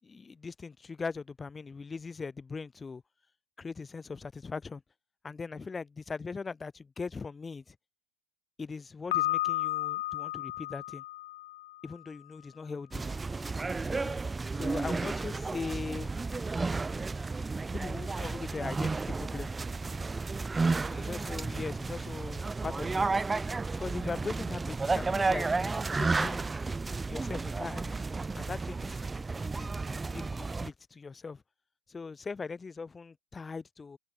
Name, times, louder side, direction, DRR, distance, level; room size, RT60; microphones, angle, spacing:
voice 1, 0.0-3.0 3.6-4.8 5.2-7.8 8.6-11.0 11.8-13.0 13.8-14.2 14.5-16.1 17.7-19.5 20.9-23.1 23.8-26.5 27.1-28.0 28.4-31.4 31.9-34.0, left 4 dB, 15° left, 7.3 m, -40 dB
Piano, 9.1-12.0, left 16 dB, 55° left, 3.0 m, -33 dB
sound 1, 12.9-30.7, right 3 dB, 10° right, 2.3 m, -32 dB
figure-of-eight pair, 90°, 0 cm